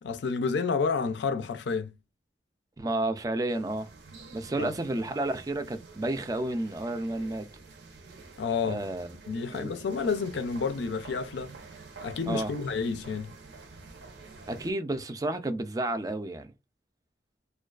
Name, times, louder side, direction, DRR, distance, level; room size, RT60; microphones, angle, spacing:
voice 1, 0.0-1.9 4.6-4.7 8.4-8.8 9.3-11.5 12.0-13.3, left 5 dB, 85° left, 0.4 m, -30 dB
voice 2, 2.8-3.9 4.3-7.5 8.6-9.2 9.5-9.8 12.3-12.5 14.5-16.5, right 2 dB, 20° right, 0.3 m, -31 dB
sound 1, 3.5-14.7, right 3 dB, 90° right, 0.7 m, -48 dB
2.3 x 2.3 x 2.3 m
head